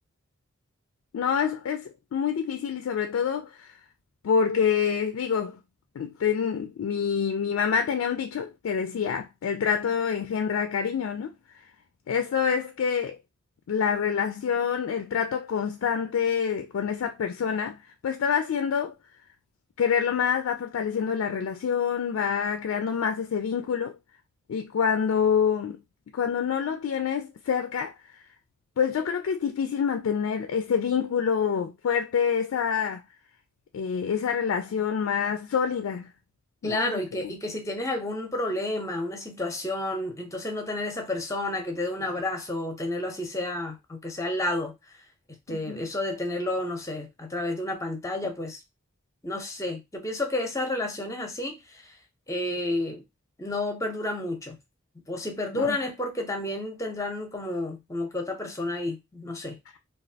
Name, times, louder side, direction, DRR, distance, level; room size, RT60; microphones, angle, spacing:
voice 1, 1.1-3.7 4.2-5.6 6.0-11.3 12.1-13.2 13.7-17.8 18.0-18.9 19.8-24.0 24.5-25.8 26.1-28.2 28.8-33.0 33.7-36.1 36.6-36.9 37.2-37.3 45.5-45.9 55.5-55.8, left 7 dB, 75° left, 0.3 m, -27 dB
voice 2, 36.6-44.7 45.5-48.6 49.2-51.9 52.3-53.0 53.4-54.6 55.1-59.6, left 2 dB, 15° left, 0.6 m, -31 dB
3.0 x 2.3 x 2.7 m
head